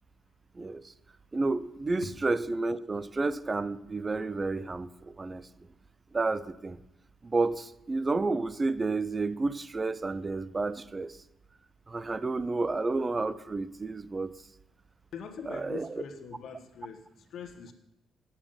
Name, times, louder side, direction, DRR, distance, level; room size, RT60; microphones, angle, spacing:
voice 1, 0.5-0.9 1.3-5.5 6.1-6.8 7.2-11.2 11.9-14.3 15.5-16.0, right 3 dB, 25° right, 16 dB, 0.4 m, -31 dB
voice 2, 15.1-17.7, left 6 dB, 65° left, 6 dB, 1.1 m, -43 dB
8.8 x 7.2 x 5.3 m, 0.89 s
cardioid pair, 90°, 0 cm